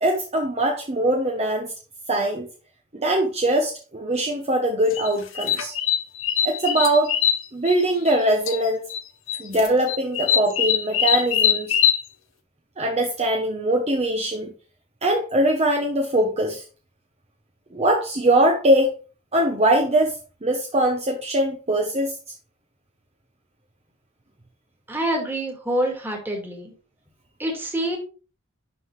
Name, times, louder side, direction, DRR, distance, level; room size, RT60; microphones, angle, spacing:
voice 1, 0.0-1.7 2.1-2.5 2.9-5.7 6.4-7.1 7.5-8.8 9.4-11.8 12.8-14.5 15.0-16.6 17.7-18.9 19.3-22.2, right 1 dB, 30° right, 2 dB, 0.9 m, -22 dB
sound 1, 4.9-8.2 8.5-9.0 9.3-12.0, left 9 dB, 75° left, 0.9 m, -22 dB
voice 2, 24.9-26.7 27.4-28.0, right 1 dB, 10° right, 0 dB, 1.9 m, -26 dB
11.0 x 3.8 x 3.2 m, 0.35 s
head